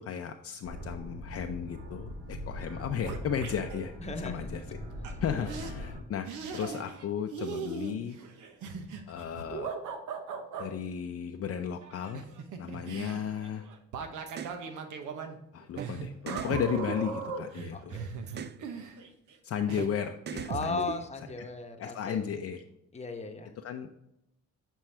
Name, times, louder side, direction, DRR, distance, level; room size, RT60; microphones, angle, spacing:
voice 1, 0.0-4.6 5.0-6.3 6.5-8.2 9.1-9.7 10.6-12.3 12.6-13.7 15.5-18.0 19.4-21.0 21.8-22.6 23.6-23.9, left 8 dB, 50° left, 5 dB, 0.5 m, -34 dB
sound 1, 0.6-6.0, equal, 55° right, 2.4 m, -41 dB
sound 2, 2.1-2.4 2.6-3.9 5.0-5.1 5.5-5.7 6.3-7.1 7.3-10.7 11.8-19.4 19.7-19.9, right 5 dB, 80° right, 1.0 m, -39 dB
voice 2, 4.0-4.6 17.7-18.2 20.5-22.2 22.9-23.5, left 3 dB, 20° left, 4 dB, 0.9 m, -36 dB
sound 3, 14.3-14.6 15.8-15.9 16.3-17.7 18.3-18.6 19.8-19.9 20.3-21.4, right 8 dB, 35° right, 0.4 m, -38 dB
7.4 x 4.5 x 3.3 m, 0.84 s
cardioid pair, 90°, 30 cm